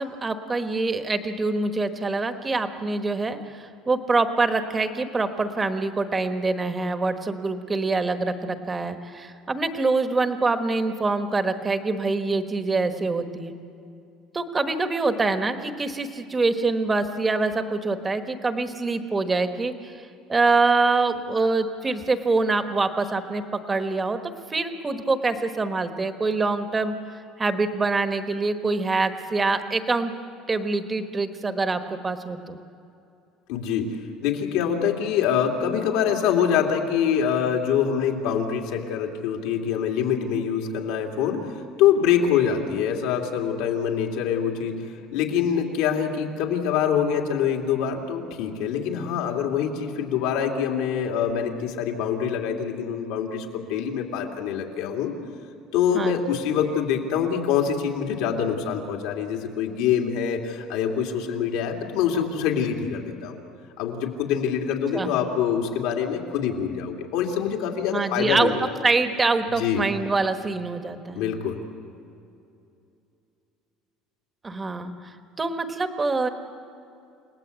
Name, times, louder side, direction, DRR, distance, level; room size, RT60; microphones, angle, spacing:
voice 1, 0.0-13.5 14.3-19.9 20.3-24.2 24.5-26.9 27.4-30.1 30.5-32.6 55.9-56.2 64.9-65.2 67.9-68.5 68.8-71.2 74.4-76.3, right 3 dB, 15° right, 8 dB, 1.2 m, -25 dB
voice 2, 33.5-55.1 55.7-63.4 63.8-68.7 69.5-69.8 71.1-71.6, left 8 dB, 75° left, 1 dB, 2.9 m, -25 dB
29.5 x 18.5 x 8.2 m, 2.6 s
cardioid pair, 170°, 0 cm